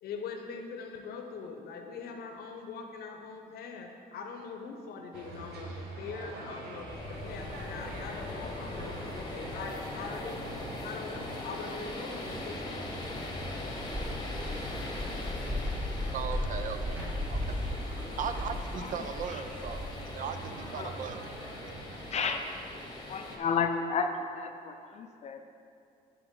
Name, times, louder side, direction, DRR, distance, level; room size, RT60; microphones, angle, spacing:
voice 1, 0.0-10.5 10.8-13.0, left 5 dB, 65° left, 4 dB, 0.8 m, -42 dB
sound 1, 5.1-22.4, right 2 dB, 75° right, 1.3 m, -46 dB
sound 2, 6.9-23.4, left 2 dB, 25° left, 1.0 m, -41 dB
sound 3, 13.8-19.9, left 1 dB, 10° right, 1.4 m, -36 dB
voice 2, 15.7-21.2 21.8-22.1 22.8-23.4, right 7 dB, 50° right, 9 dB, 0.5 m, -39 dB
voice 3, 22.1-22.4 23.1-25.5, left 5 dB, 40° left, 6 dB, 0.4 m, -32 dB
10.0 x 4.7 x 3.7 m, 2.5 s
cardioid pair, 110°, 17 cm